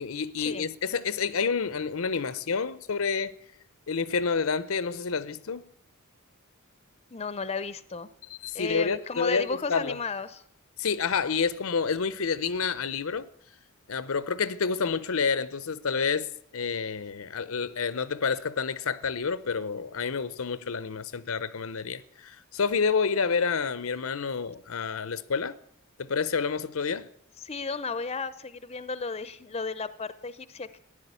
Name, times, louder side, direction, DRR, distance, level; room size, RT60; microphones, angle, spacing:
voice 1, 0.0-3.3 3.9-5.6 8.3-10.0 10.8-13.3 13.9-16.3 16.5-25.6 26.0-27.1, left 5 dB, 70° left, 0.7 m, -29 dB
voice 2, 7.1-8.1 8.5-10.4 27.4-30.8, left 4 dB, 30° left, 0.7 m, -34 dB
15.5 x 10.5 x 8.2 m
head